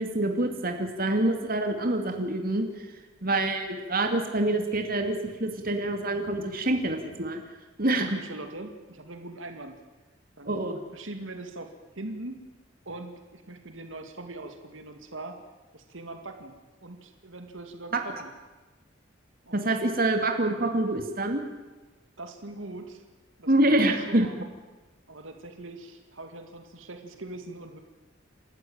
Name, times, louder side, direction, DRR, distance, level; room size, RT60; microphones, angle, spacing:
voice 1, 0.0-2.7 3.2-7.4 7.8-8.1 10.5-10.8 19.5-21.4 23.5-24.3, right 1 dB, 50° right, 4 dB, 2.6 m, -26 dB
voice 2, 8.0-9.8 10.4-10.6 10.9-12.3 12.9-15.4 15.7-16.5 16.8-18.3 19.4-19.7 22.2-23.0 23.4-24.5 25.1-27.8, right 2 dB, 85° right, 5 dB, 2.3 m, -41 dB
29.0 x 13.5 x 9.0 m, 1.2 s
head